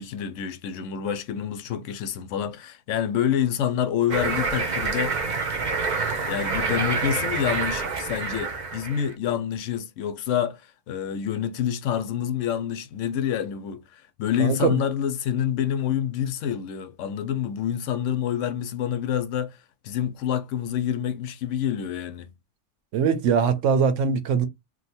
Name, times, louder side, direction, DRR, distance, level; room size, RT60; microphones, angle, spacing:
voice 1, 0.0-5.2 6.3-10.6 10.9-19.6 19.8-22.3, left 9 dB, 85° left, 0.9 m, -27 dB
sound 1, 4.1-9.1, right 4 dB, 50° right, 0.6 m, -27 dB
voice 2, 14.4-14.8 22.9-24.5, right 6 dB, 80° right, 1.0 m, -22 dB
2.7 x 2.2 x 4.1 m
omnidirectional pair, 1.2 m